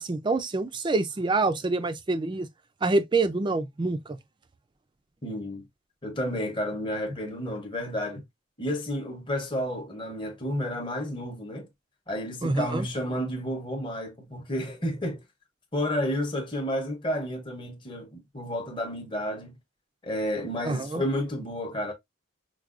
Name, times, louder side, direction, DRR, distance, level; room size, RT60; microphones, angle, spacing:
voice 1, 0.0-2.5 2.8-4.2 12.4-12.9 20.6-21.0, right 3 dB, 25° right, 0.4 m, -26 dB
voice 2, 5.2-5.6 6.0-8.2 8.6-11.7 12.1-15.2 15.7-19.6 20.0-21.9, equal, 25° left, 0.8 m, -31 dB
4.6 x 2.3 x 2.4 m
head